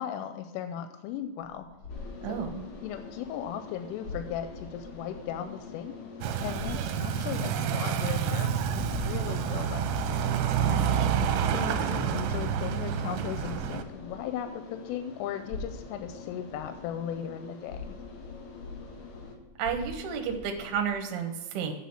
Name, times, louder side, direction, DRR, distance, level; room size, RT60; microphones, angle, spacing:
voice 1, 0.0-1.7 2.3-2.5 2.8-5.9 6.4-9.9 10.7-10.9 11.5-18.0, left 9 dB, 90° left, 8 dB, 3.2 m, -37 dB
sound 1, 1.5-6.1 6.5-15.0 15.5-20.9, left 3 dB, 35° left, 2.0 m, -45 dB
sound 2, 1.9-19.3, left 5 dB, 60° left, 2.3 m, -46 dB
voice 2, 2.2-2.6 10.6-11.3 19.6-21.7, right 7 dB, 70° right, 4 dB, 2.6 m, -32 dB
sound 3, 6.2-13.8, right 8 dB, 85° right, 3.1 m, -28 dB
8.3 x 6.1 x 7.2 m, 1.2 s
omnidirectional pair, 5.7 m